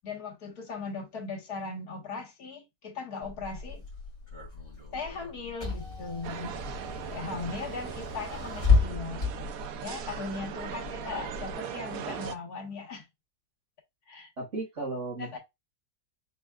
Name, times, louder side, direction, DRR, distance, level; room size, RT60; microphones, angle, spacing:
voice 1, 0.0-3.8 4.9-6.5 7.1-9.3 9.8-13.1 14.1-14.3 15.2-15.4, left 4 dB, 90° left, 1.9 m, -38 dB
Car / Engine, 3.2-11.5, left 4 dB, 50° left, 2.8 m, -32 dB
sound 1, 6.2-12.4, right 9 dB, 75° right, 1.0 m, -39 dB
voice 2, 14.4-15.4, right 2 dB, 50° right, 2.8 m, -36 dB
5.5 x 3.6 x 2.3 m
omnidirectional pair, 1.6 m